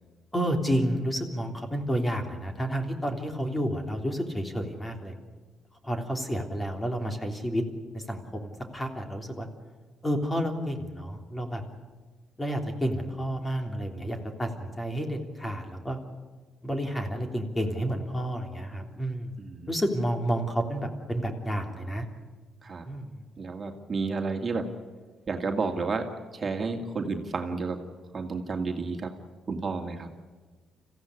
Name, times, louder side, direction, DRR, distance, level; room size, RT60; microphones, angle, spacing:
voice 1, 0.3-5.1 5.8-7.6 7.9-9.5 10.0-11.6 12.4-16.0 16.6-19.3 19.7-22.1 22.8-23.2, equal, 15° left, 4 dB, 3.3 m, -30 dB
voice 2, 19.4-19.7 22.6-22.9 23.4-24.7 25.3-27.8 28.1-29.1 29.5-30.1, right 4 dB, 35° right, 3 dB, 2.3 m, -31 dB
25.5 x 15.5 x 9.9 m, 1.4 s
cardioid pair, 90°, 0 cm